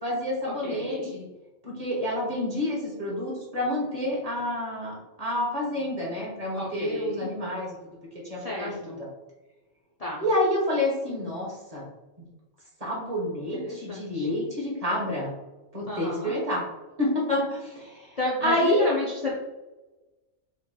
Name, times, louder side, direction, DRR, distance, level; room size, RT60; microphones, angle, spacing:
voice 1, 0.0-1.2 1.6-8.0 8.3-9.1 10.2-11.9 12.2-12.3 12.8-15.3 15.7-16.6 17.0-18.9, left 1 dB, 35° right, -4 dB, 1.2 m, -28 dB
voice 2, 0.6-1.1 6.5-7.3 8.4-9.0 10.0-10.2 13.5-14.3 15.9-16.3 18.2-19.3, left 2 dB, 40° left, -4 dB, 0.6 m, -32 dB
5.0 x 2.9 x 2.2 m, 1.1 s
omnidirectional pair, 1.2 m